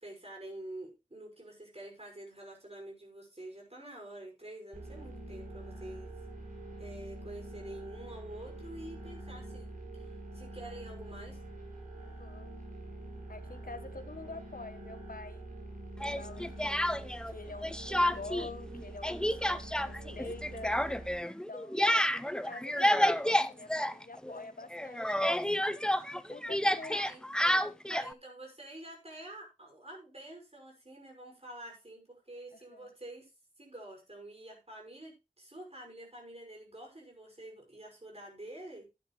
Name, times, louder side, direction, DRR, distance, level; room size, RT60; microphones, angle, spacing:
voice 1, 0.0-6.1 6.8-11.4 26.9-27.2 27.9-33.3 33.6-38.9, right 1 dB, 45° right, 0 dB, 5.7 m, -47 dB
sound 1, 4.7-21.2, right 2 dB, 80° right, 6.1 m, -45 dB
voice 2, 12.2-12.5 13.3-15.5 16.2-20.8 21.5-25.7 26.3-27.0 27.5-27.7 32.5-32.9, left 3 dB, 85° left, 10 dB, 1.3 m, -47 dB
Speech, 16.0-17.3 17.6-18.5 18.7-24.4 24.7-28.1, equal, 5° left, 0.6 m, -30 dB
12.5 x 9.4 x 3.1 m, 0.26 s
wide cardioid pair, 40°, 14 cm